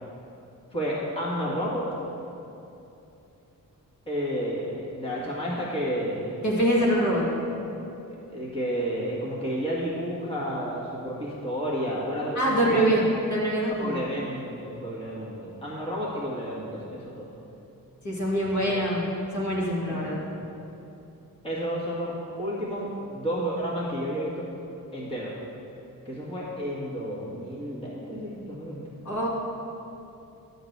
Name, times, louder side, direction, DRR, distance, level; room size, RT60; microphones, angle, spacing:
voice 1, 0.7-1.9 4.1-6.4 8.1-13.0 13.8-17.3 19.9-20.3 21.4-24.5 24.9-25.3 26.1-28.8, equal, 15° left, -7 dB, 1.9 m, -31 dB
voice 2, 6.4-7.2 12.3-13.0 13.3-14.0 18.0-19.1 19.3-20.2 29.0-29.3, right 1 dB, 55° left, -5 dB, 2.2 m, -24 dB
12.0 x 4.0 x 8.0 m, 2.8 s
wide cardioid pair, 135°, 35 cm